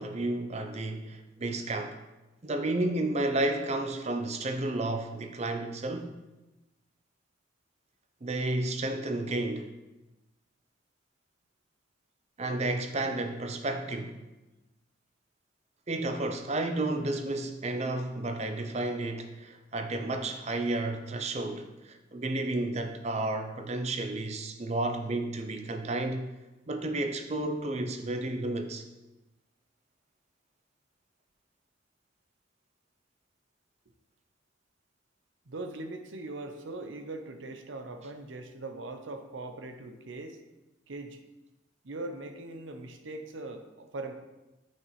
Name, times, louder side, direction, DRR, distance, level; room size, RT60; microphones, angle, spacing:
voice 1, 0.0-2.0 2.4-6.1 8.2-9.7 12.4-14.2 15.9-26.3 26.7-28.8, right 2 dB, 35° right, 7 dB, 0.6 m, -32 dB
voice 2, 35.5-40.4 40.9-41.2 41.8-44.1, right 2 dB, 80° right, 7 dB, 0.7 m, -40 dB
7.4 x 5.9 x 3.2 m, 1.0 s
head